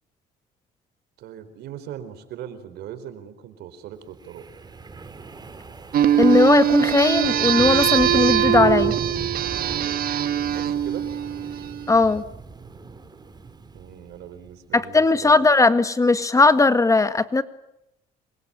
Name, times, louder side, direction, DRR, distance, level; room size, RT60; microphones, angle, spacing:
voice 1, 1.2-4.5 10.5-11.1 13.7-15.5, right 10 dB, 75° right, 11 dB, 4.4 m, -39 dB
Wind, 4.2-14.5, right 4 dB, 25° right, 3.9 m, -36 dB
sound 1, 5.9-12.0, right 10 dB, 60° right, 1.7 m, -22 dB
voice 2, 6.2-8.9 11.9-12.2 14.7-17.4, left 3 dB, 20° left, 11 dB, 1.7 m, -18 dB
27.5 x 24.0 x 8.8 m, 0.82 s
cardioid pair, 110°, 17 cm